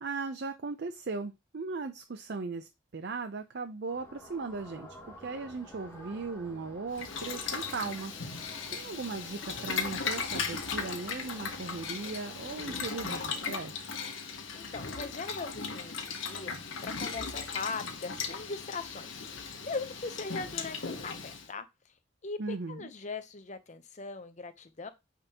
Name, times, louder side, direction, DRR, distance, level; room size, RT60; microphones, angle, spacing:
voice 1, 0.0-13.8 22.4-22.9, right 4 dB, 55° right, 0.6 m, -38 dB
sound 1, 3.9-13.7, right 1 dB, 15° left, 2.2 m, -51 dB
Boiling, 6.9-21.5, left 5 dB, 80° left, 1.3 m, -37 dB
voice 2, 14.5-16.5 16.8-19.2 19.6-21.7 22.2-24.9, left 4 dB, 40° left, 0.7 m, -40 dB
8.9 x 3.7 x 2.9 m
head